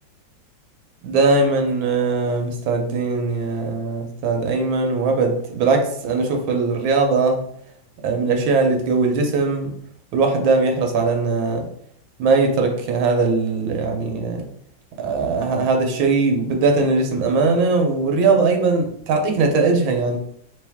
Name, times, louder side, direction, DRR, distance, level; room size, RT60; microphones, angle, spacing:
voice 1, 1.0-7.4 8.0-9.7 10.1-11.6 12.2-14.5 15.0-20.2, right 3 dB, 80° right, 3 dB, 1.5 m, -20 dB
3.6 x 3.0 x 3.4 m, 0.66 s
omnidirectional pair, 2.2 m